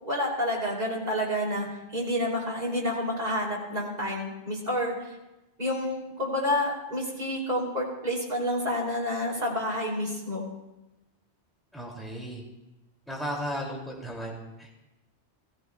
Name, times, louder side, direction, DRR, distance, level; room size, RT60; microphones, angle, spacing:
voice 1, 0.0-4.9 5.6-10.5, left 1 dB, 40° right, -4 dB, 3.2 m, -29 dB
voice 2, 11.7-12.4 13.1-14.8, equal, ahead, -3 dB, 2.5 m, -35 dB
16.5 x 15.5 x 2.3 m, 1.0 s
omnidirectional pair, 1.1 m